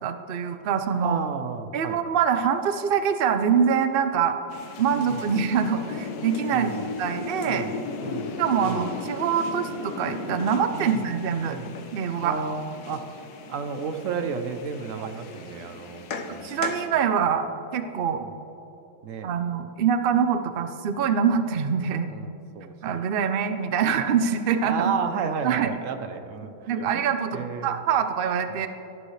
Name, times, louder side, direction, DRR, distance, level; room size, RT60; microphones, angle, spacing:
voice 1, 0.0-1.2 1.7-4.4 4.8-7.7 8.4-11.6 11.9-12.4 15.0-15.1 16.4-17.5 17.7-18.2 19.2-22.1 22.8-24.9 25.4-25.7 26.7-28.7, right 7 dB, 85° right, 8 dB, 0.5 m, -24 dB
voice 2, 1.0-2.0 4.9-5.2 6.5-6.9 7.4-8.3 8.6-8.8 10.7-11.0 11.4-11.7 12.2-13.1 13.5-16.9 19.0-19.3 22.1-22.7 24.6-27.0 27.3-27.8, right 6 dB, 60° right, 8 dB, 1.0 m, -32 dB
sound 1, 4.5-16.9, left 4 dB, 65° left, 1.4 m, -36 dB
17.5 x 13.0 x 3.2 m, 3.0 s
omnidirectional pair, 1.9 m